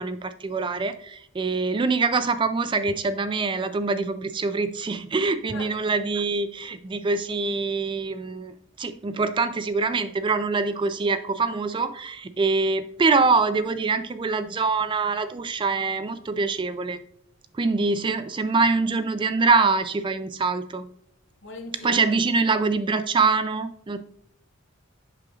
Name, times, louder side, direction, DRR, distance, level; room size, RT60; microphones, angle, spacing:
voice 1, 0.0-8.5 8.8-17.0 17.5-20.9 21.8-24.0, right 4 dB, 25° right, 0.3 m, -24 dB
voice 2, 21.4-22.2, left 4 dB, 60° left, 1.0 m, -38 dB
7.6 x 6.3 x 2.4 m
head